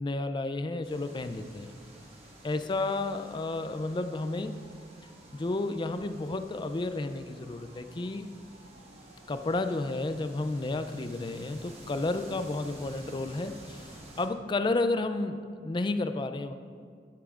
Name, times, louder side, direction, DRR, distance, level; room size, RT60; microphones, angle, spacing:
voice 1, 0.0-1.7 2.4-4.5 5.3-8.3 9.3-13.9 14.2-16.5, left 2 dB, 25° left, 9 dB, 0.4 m, -31 dB
sound 1, 0.8-14.3, right 1 dB, 35° right, 1.6 m, -51 dB
Siren, 2.5-12.9, equal, 75° right, 1.8 m, -57 dB
12.5 x 10.0 x 2.5 m, 2.1 s
head